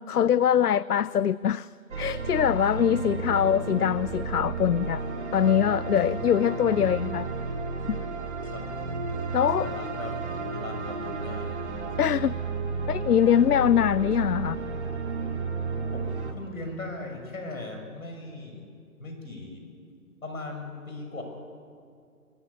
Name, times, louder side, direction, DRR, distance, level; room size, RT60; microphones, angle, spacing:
voice 1, 0.1-1.7 2.0-5.0 5.3-7.3 7.9-8.0 9.3-9.7 12.0-12.3 12.9-14.6, left 9 dB, 80° left, 20 dB, 0.6 m, -23 dB
sound 1, 1.9-16.3, right 4 dB, 45° right, 2.7 m, -32 dB
voice 2, 2.7-3.2 6.1-6.2 8.4-8.7 9.6-11.6 15.9-18.7 19.0-19.7 20.2-21.2, left 2 dB, 65° left, 4 dB, 6.5 m, -39 dB
23.5 x 17.0 x 9.8 m, 2.3 s
figure-of-eight pair, 160°, 45 cm